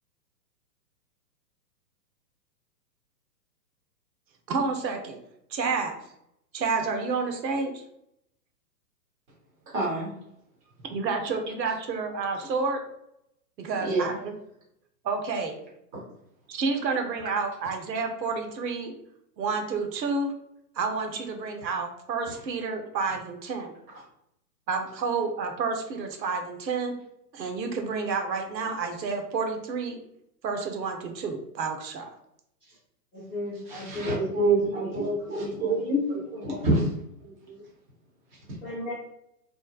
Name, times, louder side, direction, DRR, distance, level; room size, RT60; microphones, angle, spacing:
voice 1, 4.5-5.2 5.5-5.9 6.5-7.8 10.8-12.8 13.6-14.3 15.0-15.6 16.5-18.9 19.4-20.3 20.8-23.7 24.7-27.0 27.3-30.0 30.4-32.1, right 4 dB, 85° right, 4 dB, 0.9 m, -29 dB
voice 2, 9.7-10.1 13.8-14.1 15.9-16.0 33.7-36.9 37.2-37.6, right 2 dB, 25° right, -4 dB, 1.1 m, -27 dB
voice 3, 33.1-35.3 35.6-35.8 36.3-36.8 38.6-38.9, left 1 dB, 5° left, -15 dB, 0.4 m, -37 dB
3.1 x 2.2 x 2.3 m, 0.75 s
hypercardioid pair, 140°, 49 cm